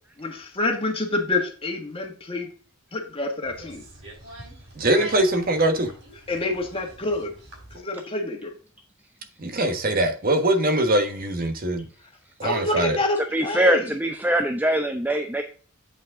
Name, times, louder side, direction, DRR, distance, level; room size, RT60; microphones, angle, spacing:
voice 1, 0.2-2.5 2.9-3.8 6.3-7.3 7.7-8.5 12.4-13.9, left 2 dB, 25° left, 1.7 m, -27 dB
sound 1, 3.4-7.8, right 1 dB, 65° right, 4.2 m, -42 dB
voice 2, 4.7-5.9 9.4-11.8 12.4-13.0, right 1 dB, 45° right, 1.3 m, -22 dB
voice 3, 13.3-15.4, right 1 dB, 10° right, 0.6 m, -22 dB
8.6 x 5.3 x 3.7 m
head